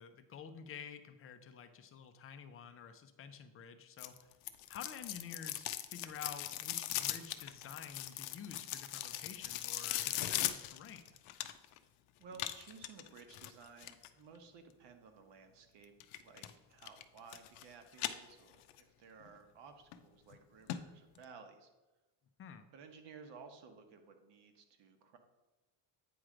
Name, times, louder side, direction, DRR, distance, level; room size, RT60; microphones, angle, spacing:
voice 1, 0.0-4.2 4.7-11.0 22.4-22.6, left 7 dB, 30° left, 8 dB, 0.4 m, -50 dB
sound 1, 4.0-11.8 12.3-14.1 16.0-16.5 16.8-17.6 17.9-18.8 19.2-19.3 19.9-20.0 20.3-20.4 20.7-20.8 21.2-21.3, left 14 dB, 90° left, 0.6 m, -39 dB
voice 2, 12.2-15.9 16.2-21.7 22.7-25.2, right 5 dB, 55° right, 6 dB, 1.1 m, -56 dB
8.8 x 3.2 x 4.9 m, 1.1 s
cardioid pair, 135°, 50 cm